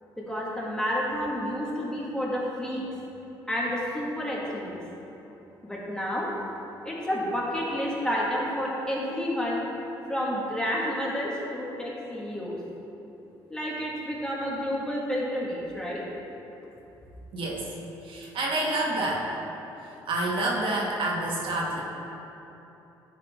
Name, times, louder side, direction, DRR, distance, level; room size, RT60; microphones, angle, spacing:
voice 1, 0.2-2.8 3.5-4.7 5.6-6.3 6.8-9.6 10.1-12.6 13.5-16.0, equal, 10° left, -5 dB, 1.5 m, -30 dB
voice 2, 17.3-17.7 18.0-19.3 19.8-21.8, right 2 dB, 65° right, -3 dB, 1.1 m, -28 dB
9.1 x 3.8 x 3.4 m, 3.0 s
supercardioid pair, 75°, 10 cm